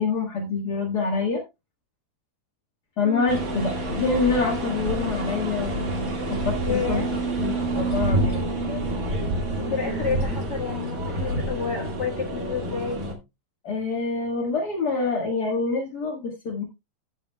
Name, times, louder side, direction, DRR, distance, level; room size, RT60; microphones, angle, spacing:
voice 1, 0.0-1.4 3.0-8.9 9.4-10.0 13.6-16.6, left 4 dB, 45° left, 1.3 m, -27 dB
sound 1, 3.3-13.1, right 1 dB, 35° right, 1.6 m, -28 dB
voice 2, 6.6-7.1 9.6-13.0, left 6 dB, 70° left, 0.9 m, -30 dB
14.5 x 7.2 x 2.2 m
omnidirectional pair, 4.0 m